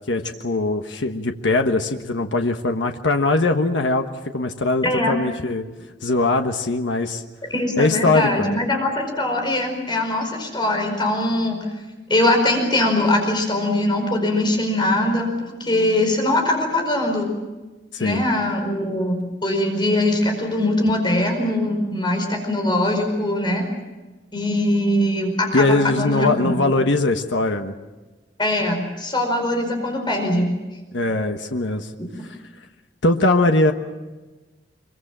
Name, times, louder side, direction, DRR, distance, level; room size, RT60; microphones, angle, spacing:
voice 1, 0.1-4.1 4.3-5.6 6.0-7.2 7.8-8.6 17.9-18.2 25.5-27.7 30.9-31.9 33.0-33.7, left 2 dB, 85° left, 5 dB, 1.3 m, -21 dB
voice 2, 4.8-5.1 7.5-11.7 12.1-15.3 15.6-17.3 18.0-23.6 24.3-26.7 28.4-30.5, left 1 dB, 25° left, 3 dB, 4.9 m, -21 dB
25.0 x 23.5 x 7.5 m, 1.2 s
head